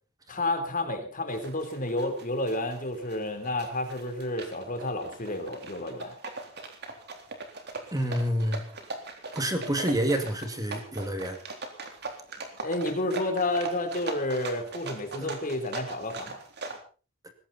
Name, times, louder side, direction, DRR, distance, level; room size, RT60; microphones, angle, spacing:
voice 1, 0.3-6.2 12.6-16.4, left 1 dB, 40° left, 6 dB, 3.7 m, -30 dB
sound 1, 1.3-16.8, right 3 dB, 55° right, 3.7 m, -40 dB
voice 2, 7.9-8.6 9.3-11.4 15.2-15.3, equal, 15° right, 6 dB, 2.4 m, -28 dB
20.5 x 16.5 x 4.3 m, 0.38 s
head